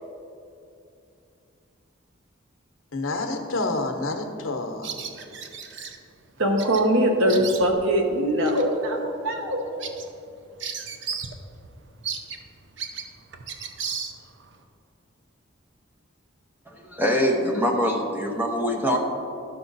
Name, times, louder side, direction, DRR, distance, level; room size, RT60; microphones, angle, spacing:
voice 1, 2.9-4.9, left 2 dB, 80° left, 4 dB, 0.9 m, -28 dB
Bird vocalization bird call bird song, 4.8-6.0 6.6-6.9 7.1-7.9 8.4-8.6 9.1-9.2 9.5-11.4 11.6-11.7 12.0-14.5, right 6 dB, 60° right, 0.6 m, -35 dB
voice 2, 6.4-9.7, equal, 80° right, 2 dB, 1.2 m, -22 dB
voice 3, 16.7-19.0, equal, 10° right, 0 dB, 0.8 m, -24 dB
12.5 x 5.9 x 4.0 m, 2.7 s
head